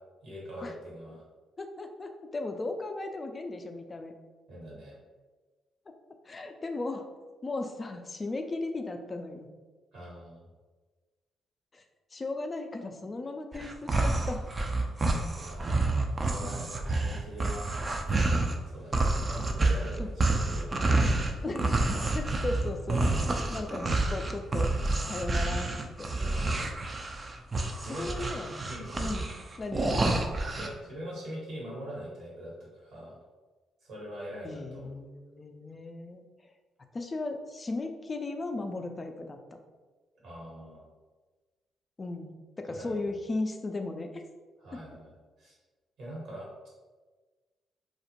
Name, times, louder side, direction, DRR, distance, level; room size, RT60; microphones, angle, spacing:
voice 1, 0.2-1.2 4.5-5.0 9.9-10.4 15.3-15.9 16.2-17.7 18.7-20.7 26.2-26.7 27.8-28.1 28.7-29.1 30.5-33.1 33.8-34.9 40.2-40.8 42.7-43.0 44.6-45.1 45.4-45.5 46.0-46.7, equal, 75° right, -5 dB, 1.2 m, -43 dB
voice 2, 1.6-4.1 6.3-7.1 7.4-9.5 11.7-11.8 12.1-14.5 20.0-20.1 21.4-21.7 22.1-23.0 23.5-24.7 25.1-25.7 26.0-26.1 27.9-28.5 29.0-29.3 29.6-30.3 34.4-36.2 36.9-39.4 42.0-44.2 44.7-44.8, left 2 dB, 35° left, 5 dB, 0.3 m, -36 dB
sound 1, 13.5-18.6 18.9-30.7, right 2 dB, 35° right, 0.4 m, -28 dB
2.4 x 2.1 x 2.9 m, 1.3 s
supercardioid pair, 50°, 0 cm